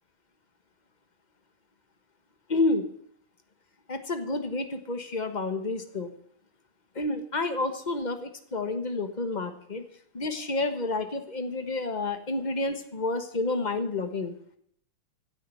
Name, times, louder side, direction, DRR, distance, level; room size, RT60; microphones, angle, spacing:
voice 1, 2.5-2.8 3.9-6.1 6.9-9.8 10.1-14.3, left 2 dB, 25° left, 8 dB, 1.1 m, -29 dB
15.5 x 6.6 x 9.0 m, 0.66 s
omnidirectional pair, 2.3 m